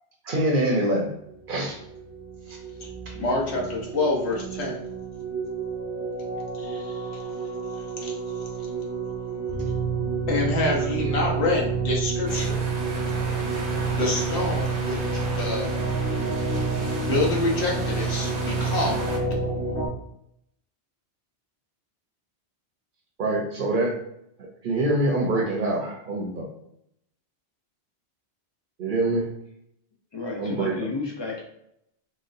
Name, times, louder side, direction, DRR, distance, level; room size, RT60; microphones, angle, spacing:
voice 1, 0.2-1.1 1.5-1.8 23.2-24.0 24.4-26.5 28.8-29.3 30.4-30.7, right 1 dB, 55° right, 1 dB, 0.7 m, -25 dB
sound 1, 1.5-19.9, right 4 dB, 20° right, 0.4 m, -29 dB
voice 2, 3.2-4.8 6.6-7.2 8.0-8.1 10.3-12.5 13.9-15.7 17.0-19.1, left 2 dB, 75° left, -1 dB, 1.1 m, -27 dB
sound 2, 12.3-19.2, right 2 dB, 90° right, 1.0 m, -35 dB
voice 3, 30.1-31.4, left 3 dB, 35° left, 0 dB, 0.5 m, -32 dB
3.9 x 2.3 x 2.5 m, 0.76 s
omnidirectional pair, 1.1 m